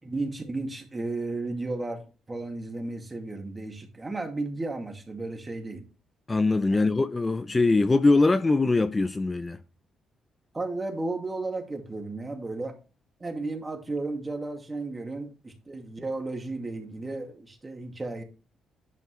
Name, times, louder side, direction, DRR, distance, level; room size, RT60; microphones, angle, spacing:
voice 1, 0.0-5.8 6.7-6.9 10.5-12.8 13.2-18.2, right 2 dB, 20° right, 2.4 m, -34 dB
voice 2, 6.3-9.6, left 3 dB, 20° left, 0.6 m, -22 dB
11.0 x 5.2 x 3.2 m
cardioid pair, 90°, 0 cm